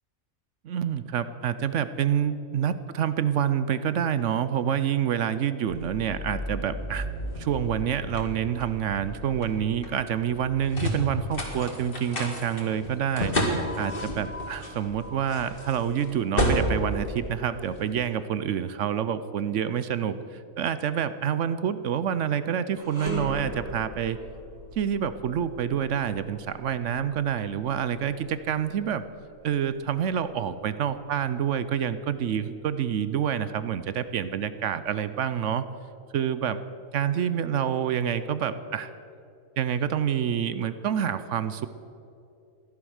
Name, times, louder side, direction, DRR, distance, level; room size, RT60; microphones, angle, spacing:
voice 1, 0.7-7.1 7.4-13.3 13.8-24.2 24.8-29.0 29.4-35.6 36.1-36.6 36.9-38.9 39.6-41.7, right 9 dB, 65° right, 13 dB, 0.9 m, -27 dB
sound 1, 5.7-18.0, equal, 40° left, 2.3 m, -32 dB
sound 2, 22.7-32.0 32.4-32.6 33.4-34.3, equal, 10° right, 3.1 m, -41 dB
16.0 x 11.0 x 6.4 m, 2.6 s
omnidirectional pair, 1.5 m